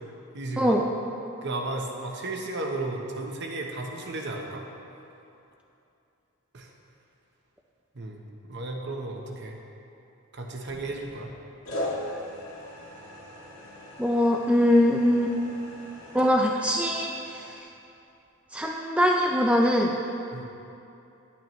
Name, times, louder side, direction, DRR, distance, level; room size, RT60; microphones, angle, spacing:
voice 1, 0.3-0.7 1.4-4.6 6.5-6.7 7.9-8.2 8.5-9.6 10.3-11.3 20.3-20.4, right 2 dB, 55° right, 1 dB, 0.9 m, -34 dB
sound 1, 10.7-11.3 11.7-17.6, left 1 dB, 70° left, 1.8 m, -39 dB
voice 2, 14.0-15.3 16.1-17.5 18.5-19.9, equal, 5° right, 0 dB, 0.3 m, -22 dB
10.5 x 8.6 x 3.1 m, 2.8 s
head